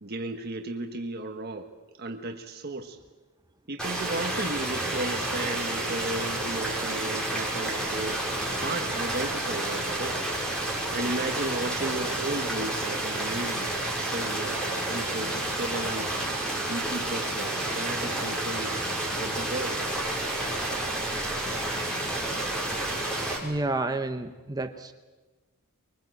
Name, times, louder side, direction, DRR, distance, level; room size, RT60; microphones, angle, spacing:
voice 1, 0.0-1.7 2.0-3.0 3.7-8.3 8.6-10.2 10.9-16.1 16.5-18.7 19.1-19.7, right 2 dB, 45° right, 4 dB, 1.4 m, -34 dB
sound 1, 3.8-23.4, right 1 dB, 5° left, 5.5 m, -30 dB
voice 2, 23.4-24.9, right 2 dB, 20° right, 7 dB, 0.9 m, -30 dB
25.5 x 23.0 x 7.9 m, 1.3 s
head